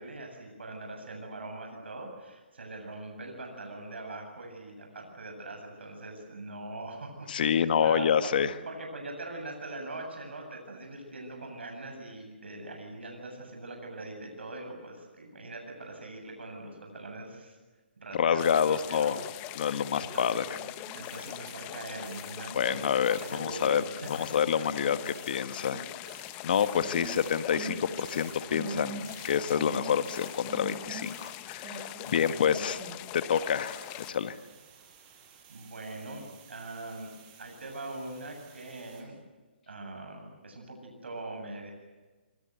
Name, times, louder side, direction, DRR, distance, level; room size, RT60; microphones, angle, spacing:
voice 1, 0.0-8.3 8.7-17.6 18.0-19.2 19.7-20.4 20.9-23.0 23.3-23.9 32.1-32.3 32.6-32.7 35.5-37.1 37.4-39.2 39.7-41.7, right 2 dB, 80° right, 3 dB, 8.0 m, -42 dB
voice 2, 7.3-8.5 18.1-19.2 19.5-20.4 22.5-25.8 26.4-32.8 33.1-34.4, left 8 dB, 55° left, 11 dB, 1.6 m, -28 dB
sound 1, 18.4-34.1, left 15 dB, 25° left, 1.0 m, -42 dB
sound 2, 20.1-22.6 23.0-33.1 33.5-39.0, right 4 dB, 25° right, 6.4 m, -46 dB
26.0 x 24.5 x 8.1 m, 1.3 s
hypercardioid pair, 150°, 6 cm